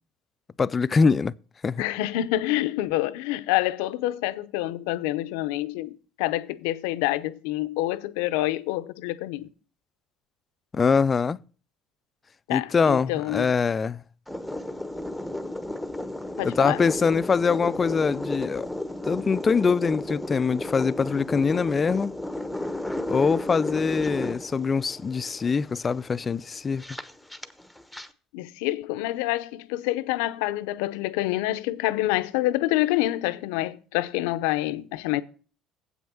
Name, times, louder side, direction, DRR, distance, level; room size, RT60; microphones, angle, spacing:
voice 1, 0.6-1.3 1.6-1.8 10.7-11.4 12.5-14.0 16.4-18.7 19.0-22.1 23.1-26.8, left 5 dB, 30° left, 0.4 m, -23 dB
voice 2, 1.8-9.5 12.5-13.5 16.4-16.8 28.3-35.2, left 16 dB, 85° left, 0.6 m, -27 dB
sound 1, 14.3-28.1, left 1 dB, ahead, 0.9 m, -34 dB
8.0 x 6.2 x 6.9 m
supercardioid pair, 85°, 0 cm